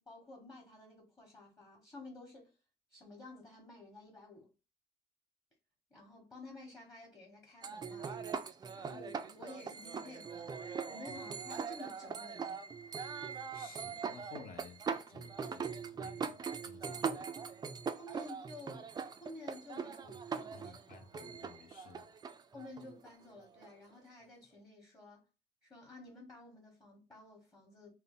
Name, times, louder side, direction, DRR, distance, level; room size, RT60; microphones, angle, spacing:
voice 1, 0.0-2.6 2.9-4.5 5.9-12.6 18.0-21.1 22.5-25.2 25.6-27.9, left 2 dB, 20° left, 1.1 m, -52 dB
sound 1, 7.6-23.9, right 6 dB, 25° right, 0.3 m, -41 dB
voice 2, 13.5-17.3 20.5-22.1, left 6 dB, 55° left, 0.7 m, -55 dB
2.7 x 2.0 x 3.6 m
cardioid pair, 110°, 17 cm